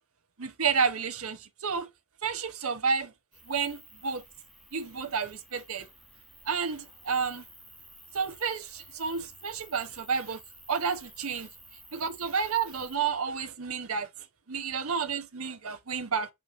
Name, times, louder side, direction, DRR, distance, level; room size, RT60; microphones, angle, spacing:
voice 1, 0.4-1.9 2.2-3.1 3.4-4.2 4.7-5.9 6.5-7.4 8.1-10.4 10.7-11.5 11.9-14.1 14.5-16.3, right 6 dB, 80° right, 1.0 m, -30 dB
sound 1, 3.3-13.0, right 1 dB, ahead, 1.8 m, -53 dB
5.5 x 4.9 x 3.6 m
head